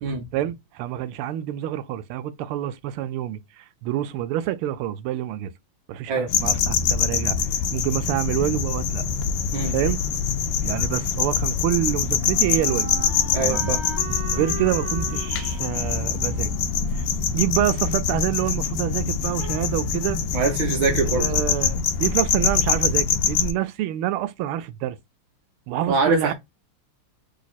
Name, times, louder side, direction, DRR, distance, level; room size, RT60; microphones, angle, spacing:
voice 1, 0.3-5.5 5.9-9.0 9.7-10.0 10.6-12.9 13.4-13.7 14.3-16.5 16.9-17.1 17.3-20.2 21.1-25.0 25.7-26.3, right 13 dB, 90° right, 1.5 m, -27 dB
sound 1, 6.3-23.5, left 6 dB, 70° left, 1.1 m, -24 dB
Wind instrument woodwind instrument, 11.3-18.1, right 4 dB, 50° right, 1.5 m, -39 dB
voice 2, 13.3-13.8 20.3-21.3 25.9-26.3, right 4 dB, 75° right, 1.5 m, -23 dB
4.0 x 2.8 x 4.0 m
omnidirectional pair, 2.3 m